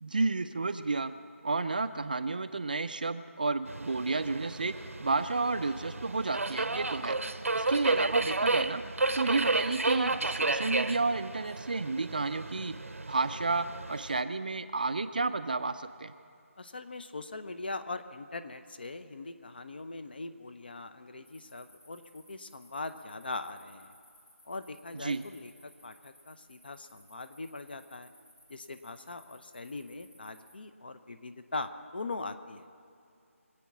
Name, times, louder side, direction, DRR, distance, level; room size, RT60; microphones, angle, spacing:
voice 1, 0.0-1.1 1.4-4.7 5.0-7.2 7.5-8.8 9.1-12.8 13.1-16.1 24.9-25.2, right 3 dB, 35° right, 11 dB, 0.5 m, -31 dB
Subway metro underground, 3.7-14.2, right 2 dB, 70° right, 0.8 m, -32 dB
voice 2, 16.6-23.9 24.4-28.1 28.5-32.7, left 3 dB, 40° left, 10 dB, 0.8 m, -41 dB
sound 1, 21.2-30.5, left 1 dB, 80° left, 4.2 m, -61 dB
24.0 x 8.5 x 6.1 m, 2.6 s
figure-of-eight pair, 170°, 8 cm